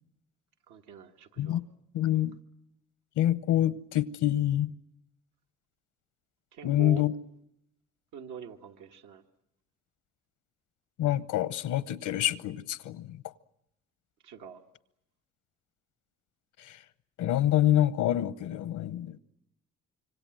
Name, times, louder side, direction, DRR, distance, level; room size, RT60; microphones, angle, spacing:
voice 1, 0.7-1.6 6.5-7.1 8.1-9.2 14.2-14.6, right 7 dB, 90° right, 1.4 m, -45 dB
voice 2, 1.9-2.4 3.2-4.7 6.6-7.1 11.0-13.2 16.6-16.8 17.2-19.2, left 12 dB, 85° left, 0.9 m, -26 dB
26.0 x 24.5 x 7.6 m
cardioid pair, 90°, 30 cm